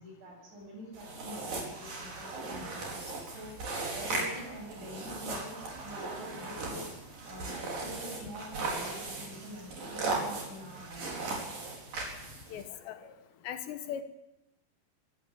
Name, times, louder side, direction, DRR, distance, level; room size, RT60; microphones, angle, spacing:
voice 1, 0.0-6.9 7.2-11.4, equal, 70° right, -1 dB, 10.0 m, -46 dB
sound 1, 0.9-12.6, right 3 dB, 45° right, 6.0 m, -38 dB
voice 2, 12.5-13.0 13.4-14.0, left 9 dB, 75° left, 9 dB, 3.2 m, -38 dB
22.5 x 14.0 x 8.9 m, 0.95 s
omnidirectional pair, 5.4 m